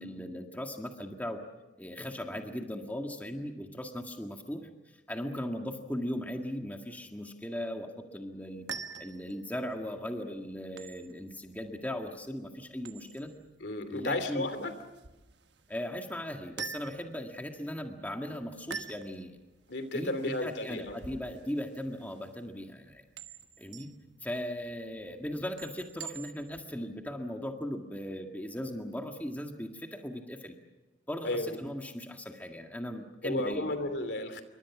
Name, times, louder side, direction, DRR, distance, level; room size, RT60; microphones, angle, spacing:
voice 1, 0.0-1.4 1.8-4.6 5.1-8.7 9.0-13.3 13.9-14.5 15.7-19.3 19.9-23.0 23.6-23.9 24.2-30.6 31.1-33.7, equal, 10° left, 3 dB, 1.9 m, -38 dB
sound 1, 8.4-26.7, right 6 dB, 70° right, 1.3 m, -47 dB
voice 2, 13.6-14.7 19.7-21.0 31.2-31.6 33.2-34.4, left 2 dB, 65° left, 9 dB, 2.9 m, -33 dB
28.5 x 24.0 x 6.1 m, 1.0 s
head